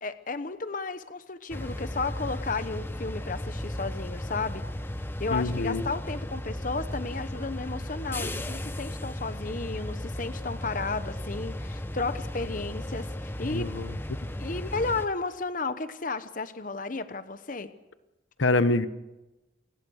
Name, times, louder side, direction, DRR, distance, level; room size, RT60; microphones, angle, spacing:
voice 1, 0.0-4.6 5.2-13.7 14.4-17.7, left 3 dB, 45° left, 11 dB, 1.0 m, -33 dB
sound 1, 1.5-15.1, left 1 dB, 10° left, 1.0 m, -35 dB
voice 2, 5.3-5.8 13.5-13.9 18.4-18.9, left 2 dB, 85° left, 12 dB, 1.1 m, -25 dB
28.5 x 20.5 x 6.5 m, 1.0 s
head